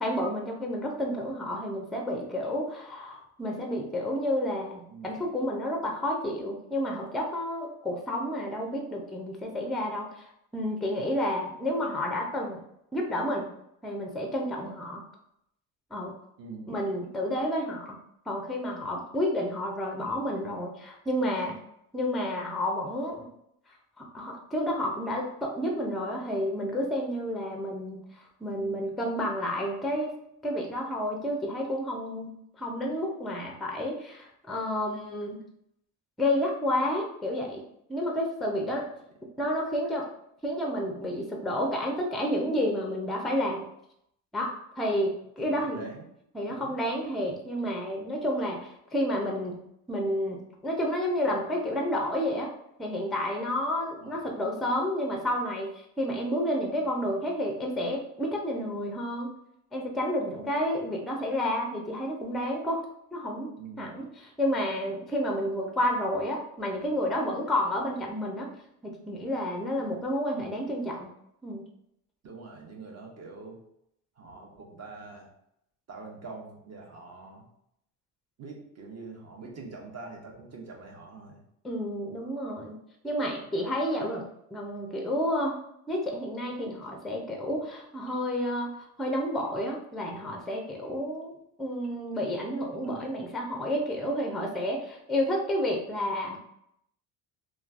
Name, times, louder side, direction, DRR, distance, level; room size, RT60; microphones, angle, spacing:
voice 1, 0.0-12.6 12.9-13.5 13.8-15.0 15.9-16.1 16.7-18.0 18.3-21.6 21.9-23.3 24.0-30.1 30.4-35.4 36.2-37.6 37.9-38.9 39.4-40.1 40.4-43.7 44.3-45.9 46.3-52.5 52.8-59.3 59.7-68.5 68.8-71.1 71.4-71.6 81.6-82.8 83.0-85.6 85.9-96.4, left 1 dB, ahead, 1 dB, 0.4 m, -30 dB
voice 2, 4.9-5.2 16.4-16.7 28.6-28.8 38.5-38.9 45.4-46.1 46.5-46.8 54.0-54.2 63.6-64.0 72.2-73.6 74.2-75.3 75.9-77.5 78.4-81.4 92.9-93.1, right 3 dB, 40° right, 0 dB, 0.8 m, -44 dB
3.0 x 2.2 x 2.4 m, 0.76 s
supercardioid pair, 80°, 40 cm